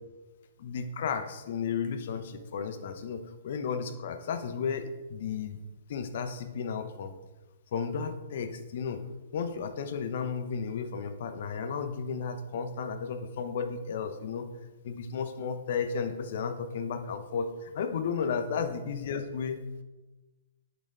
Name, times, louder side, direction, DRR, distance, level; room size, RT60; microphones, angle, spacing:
voice 1, 0.6-5.6 5.9-7.1 7.7-9.0 9.3-14.5 14.8-19.6, left 6 dB, 55° left, 9 dB, 0.8 m, -33 dB
8.4 x 6.0 x 3.7 m, 1.1 s
figure-of-eight pair, 115°, 0 cm